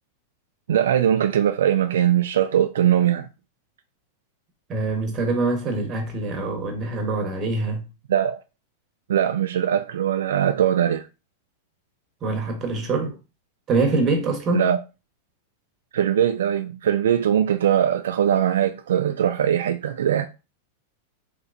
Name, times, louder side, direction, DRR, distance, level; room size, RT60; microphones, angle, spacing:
voice 1, 0.7-3.3 8.1-8.4 9.1-11.0 14.5-14.8 15.9-20.3, right 10 dB, 85° right, 0.3 m, -21 dB
voice 2, 4.7-7.9 12.2-13.2 13.7-14.7, right 3 dB, 30° right, 1.0 m, -24 dB
3.3 x 2.9 x 2.5 m
hypercardioid pair, 130°, 0 cm